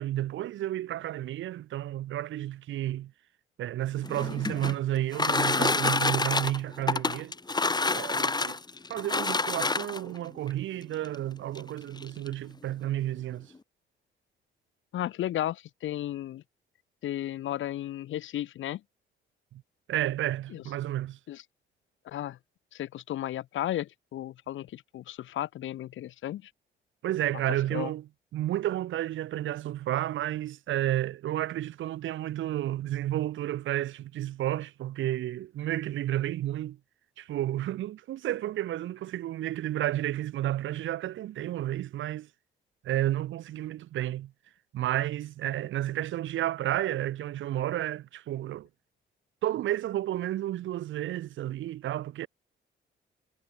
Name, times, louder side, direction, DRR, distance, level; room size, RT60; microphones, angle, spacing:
voice 1, 0.0-3.1 3.6-7.3 7.9-8.6 8.9-13.5 19.5-19.6 19.9-21.2 27.0-36.8 37.2-42.3 42.8-44.3 44.7-48.7 49.4-52.3, right 13 dB, 75° right, 1.3 m, -31 dB
sound 1, 4.0-10.2 11.0-11.1 11.5-11.6 12.0-12.3, left 3 dB, 20° left, 2.6 m, -28 dB
voice 2, 14.9-16.4 17.0-18.8 20.5-20.6 21.3-21.4 22.0-22.4 22.7-26.5 27.7-27.9, left 13 dB, 75° left, 2.5 m, -34 dB
cardioid pair, 90°, 20 cm